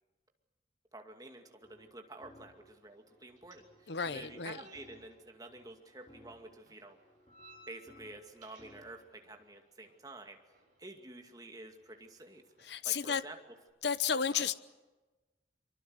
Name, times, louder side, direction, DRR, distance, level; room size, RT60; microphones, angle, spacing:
voice 1, 0.9-7.0 7.7-10.4 10.8-12.4 12.8-13.4 14.3-14.5, right 2 dB, 20° right, 2.3 m, -50 dB
sound 1, 1.4-9.1, left 1 dB, 30° left, 4.1 m, -62 dB
sound 2, 2.2-13.7, right 1 dB, 45° right, 7.4 m, -64 dB
voice 2, 3.9-4.6 12.7-13.2 13.8-14.6, left 6 dB, 65° left, 0.9 m, -32 dB
24.5 x 24.0 x 8.0 m
head